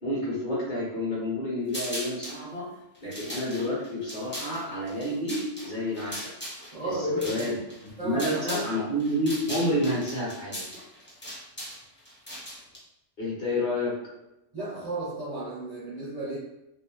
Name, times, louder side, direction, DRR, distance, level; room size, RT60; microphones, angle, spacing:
voice 1, 0.0-2.7 3.0-6.3 6.8-10.6 13.2-13.9, left 1 dB, 45° left, -7 dB, 1.2 m, -29 dB
sound 1, 1.7-2.4 2.9-8.7 9.0-12.8, equal, 10° left, 0.7 m, -39 dB
voice 2, 6.7-7.5 8.0-8.7 14.5-16.4, right 1 dB, 45° right, -8 dB, 0.6 m, -33 dB
2.8 x 2.0 x 3.0 m, 0.90 s
omnidirectional pair, 1.3 m